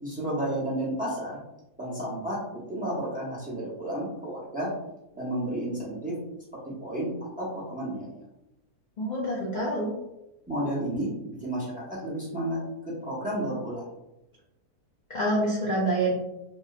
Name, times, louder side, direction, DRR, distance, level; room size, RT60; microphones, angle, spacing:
voice 1, 0.0-1.4 1.8-4.7 5.1-6.2 6.7-8.1 10.5-12.6 12.9-13.9, right 1 dB, 5° right, -8 dB, 0.7 m, -32 dB
voice 2, 9.0-9.9 15.1-16.1, right 1 dB, 50° left, -6 dB, 0.5 m, -26 dB
3.1 x 3.1 x 2.4 m, 0.93 s
omnidirectional pair, 1.7 m